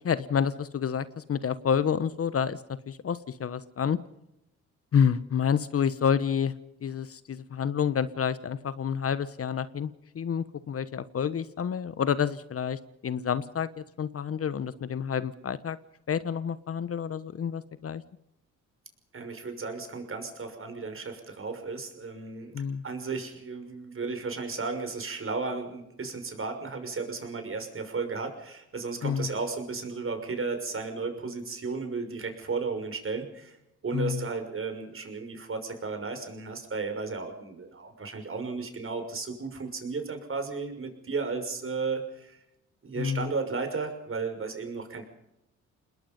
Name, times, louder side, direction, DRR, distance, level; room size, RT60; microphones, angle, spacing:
voice 1, 0.0-4.0 4.9-6.5 6.8-15.8 16.1-18.0 22.5-22.8 29.0-29.3 33.9-34.3 43.0-43.3, left 7 dB, 45° left, 15 dB, 1.2 m, -29 dB
voice 2, 19.1-22.5 22.8-33.6 33.8-42.4 42.8-45.1, right 4 dB, 40° right, 6 dB, 6.1 m, -34 dB
28.5 x 20.5 x 5.5 m, 0.86 s
supercardioid pair, 65°, 32 cm